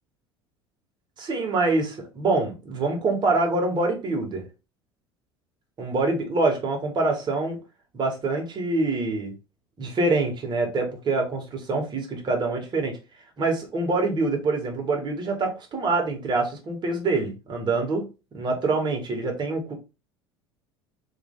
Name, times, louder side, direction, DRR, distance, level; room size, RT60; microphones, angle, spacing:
voice 1, 1.2-4.4 5.8-7.6 7.9-9.3 9.8-13.0 13.4-18.1 18.3-19.7, right 3 dB, 35° right, 1 dB, 1.9 m, -25 dB
3.3 x 3.3 x 3.8 m, 0.29 s
hypercardioid pair, 70°, 13 cm